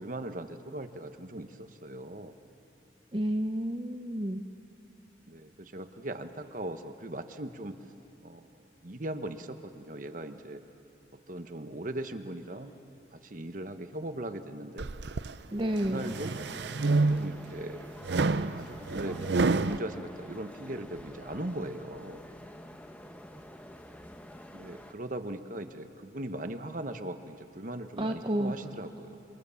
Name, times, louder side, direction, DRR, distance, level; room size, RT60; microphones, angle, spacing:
voice 1, 0.0-2.3 5.3-7.8 8.2-10.6 11.3-12.8 13.1-14.9 15.6-16.4 17.1-17.8 18.0-22.2 24.5-29.2, right 1 dB, 45° right, 8 dB, 1.1 m, -39 dB
voice 2, 3.1-4.5 15.5-16.2 28.0-28.5, right 1 dB, 25° right, 4 dB, 0.8 m, -30 dB
sound 1, 14.8-15.3 15.8-17.5 18.0-19.8, right 3 dB, 65° right, 0.6 m, -28 dB
sound 2, 15.7-24.9, equal, 10° left, 1.0 m, -48 dB
27.5 x 25.5 x 7.0 m, 2.9 s
head